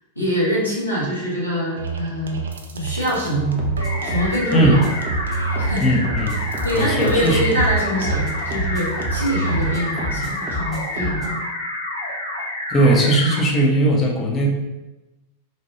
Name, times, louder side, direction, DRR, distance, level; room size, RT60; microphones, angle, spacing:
voice 1, 0.1-2.4 2.7-3.7 4.0-4.9 5.6-6.0 6.6-11.4, equal, 85° left, -7 dB, 1.0 m, -24 dB
sound 1, 1.8-9.8, right 4 dB, 70° right, 0.3 m, -27 dB
sound 2, 3.6-11.4, equal, 20° right, 0.7 m, -31 dB
sound 3, 3.8-13.4, left 1 dB, 70° left, 0.7 m, -29 dB
voice 2, 5.8-6.4 6.7-7.4 12.7-14.5, right 1 dB, 25° left, -1 dB, 0.5 m, -18 dB
2.7 x 2.2 x 3.0 m, 1.1 s
figure-of-eight pair, 90°, 0 cm